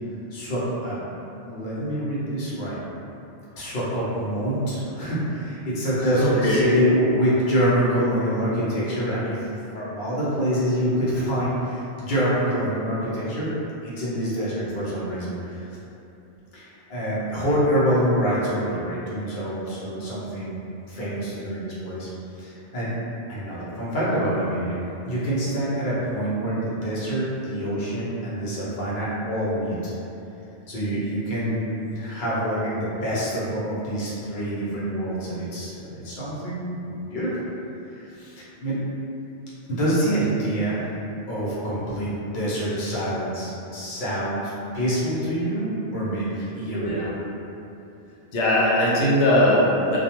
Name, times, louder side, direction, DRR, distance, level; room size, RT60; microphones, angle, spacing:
voice 1, 0.3-1.1 1.4-2.8 3.6-13.5 13.8-15.7 16.5-20.6 20.9-22.1 22.4-22.9 23.3-24.8 25.0-29.9 30.7-37.5 37.9-38.8 39.7-40.8 41.3-47.0, equal, 50° left, -8 dB, 0.8 m, -26 dB
voice 2, 6.2-6.7 46.8-47.1 48.3-50.0, left 1 dB, 80° left, -5 dB, 0.9 m, -20 dB
2.3 x 2.2 x 2.8 m, 2.8 s
omnidirectional pair, 1.2 m